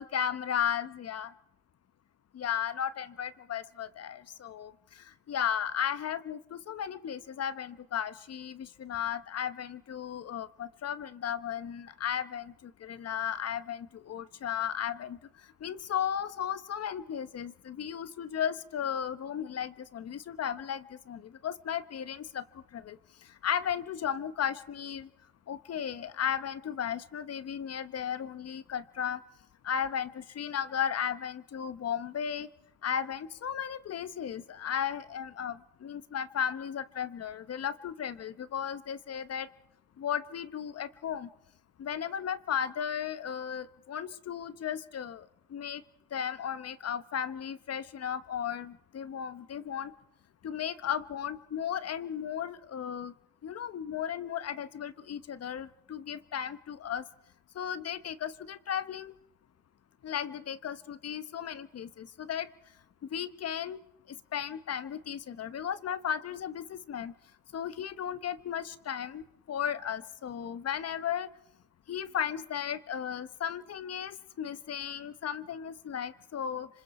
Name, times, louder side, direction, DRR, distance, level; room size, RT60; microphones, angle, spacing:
voice 1, 0.0-1.3 2.3-15.2 15.6-22.4 22.7-23.0 23.4-25.1 25.5-29.2 29.6-32.5 32.8-39.5 40.0-41.3 41.8-45.8 46.1-49.9 50.4-53.1 53.4-57.0 57.5-59.1 60.0-62.5 63.1-63.8 64.3-67.1 67.5-71.3 71.9-76.7, left 8 dB, 55° left, 14 dB, 1.1 m, -35 dB
26.5 x 26.0 x 4.3 m, 0.81 s
cardioid pair, 90°, 30 cm